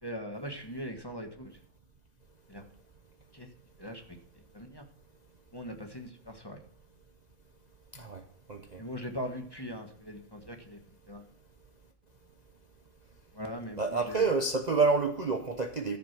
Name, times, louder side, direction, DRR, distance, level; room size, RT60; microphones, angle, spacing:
voice 1, 0.0-1.6 2.5-2.6 3.3-3.5 3.8-4.2 4.5-4.9 5.5-6.6 8.8-10.8 11.1-11.3 13.3-14.3, equal, 15° left, 4 dB, 1.3 m, -40 dB
voice 2, 8.5-8.8 13.8-16.0, right 4 dB, 35° right, 5 dB, 0.9 m, -28 dB
14.5 x 6.0 x 6.0 m, 0.65 s
omnidirectional pair, 1.6 m